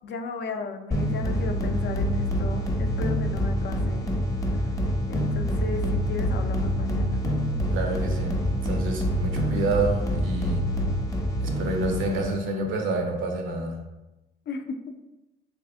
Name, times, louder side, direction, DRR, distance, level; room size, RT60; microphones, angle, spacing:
voice 1, 0.0-4.2 4.6-4.7 5.1-7.2 14.5-14.9, left 4 dB, 60° left, 6 dB, 0.5 m, -34 dB
sound 1, 0.9-12.4, equal, 15° left, 0.6 m, -26 dB
voice 2, 7.7-10.6 11.4-13.8, right 2 dB, 80° right, 2 dB, 0.8 m, -28 dB
3.3 x 2.8 x 3.4 m, 0.99 s
cardioid pair, 90°, 20 cm